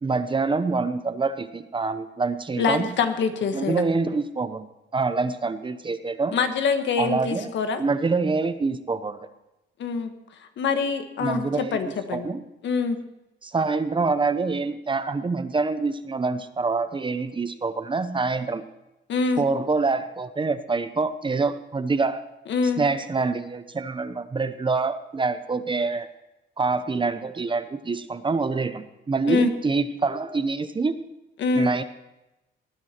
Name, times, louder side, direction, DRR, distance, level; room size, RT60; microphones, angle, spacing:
voice 1, 0.0-2.9 3.5-4.7 4.9-6.4 7.0-7.5 7.8-9.2 11.2-12.4 13.4-18.6 19.4-22.3 22.8-26.1 26.6-31.0 31.5-31.8, right 4 dB, 25° right, 11 dB, 0.8 m, -26 dB
voice 2, 2.6-3.8 6.3-7.8 9.8-10.1 10.6-12.3 12.6-13.0 19.1-19.4 22.5-22.8 29.3-29.5 31.4-31.7, left 5 dB, 70° left, 7 dB, 1.4 m, -25 dB
18.5 x 9.6 x 4.4 m, 0.95 s
cardioid pair, 100°, 19 cm